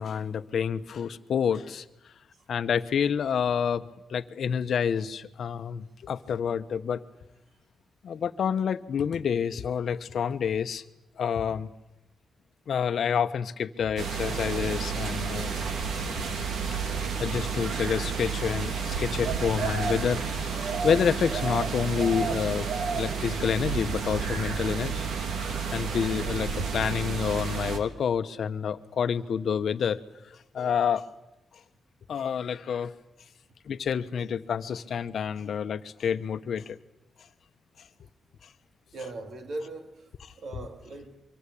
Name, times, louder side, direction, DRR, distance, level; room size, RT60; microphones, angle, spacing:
voice 1, 0.0-2.1 2.5-7.1 8.0-10.8 11.2-11.7 12.7-15.5 16.7-16.8 17.2-25.1 25.7-31.1 32.1-32.9 33.6-36.8, left 7 dB, 65° left, 1.1 m, -28 dB
sound 1, 14.0-27.8, right 5 dB, 80° right, 3.1 m, -30 dB
voice 2, 38.9-40.1 40.4-41.2, right 2 dB, 60° right, 3.1 m, -39 dB
24.5 x 24.5 x 8.5 m
wide cardioid pair, 130°, 0 cm